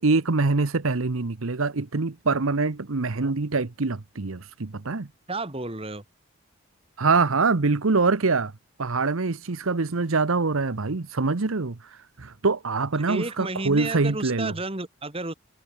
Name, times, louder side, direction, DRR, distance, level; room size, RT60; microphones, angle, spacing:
voice 1, 0.0-5.1 7.0-8.5 8.8-11.8 12.2-14.5, right 3 dB, 70° right, 0.9 m, -24 dB
voice 2, 5.3-6.0 13.1-15.3, right 2 dB, 25° right, 2.1 m, -31 dB
head